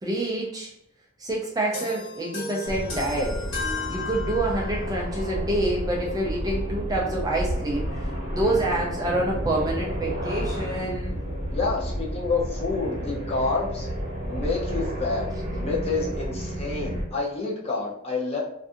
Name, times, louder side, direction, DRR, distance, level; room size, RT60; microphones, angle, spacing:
voice 1, 0.0-0.7 1.2-3.4 3.9-11.2, right 1 dB, 20° right, -2 dB, 0.3 m, -27 dB
sound 1, 1.7-4.9, left 4 dB, 55° left, 1.2 m, -34 dB
sound 2, 2.6-17.0, equal, 35° right, 0.8 m, -31 dB
voice 2, 11.5-13.9 14.2-18.4, left 3 dB, 30° left, -4 dB, 0.6 m, -28 dB
2.5 x 2.4 x 2.4 m, 0.76 s
head